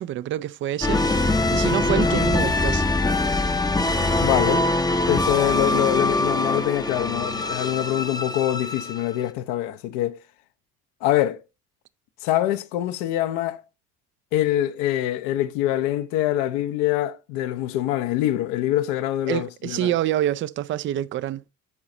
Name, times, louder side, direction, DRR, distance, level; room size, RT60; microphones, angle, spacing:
voice 1, 0.0-2.8 19.3-21.4, right 12 dB, 30° right, 0.4 m, -27 dB
sound 1, 0.8-9.2, left 2 dB, 10° left, 0.6 m, -23 dB
voice 2, 4.2-4.7 5.1-10.2 11.0-11.4 12.2-13.6 14.3-19.9, left 13 dB, 60° left, 0.8 m, -24 dB
12.0 x 4.8 x 2.6 m
figure-of-eight pair, 55°, 45 cm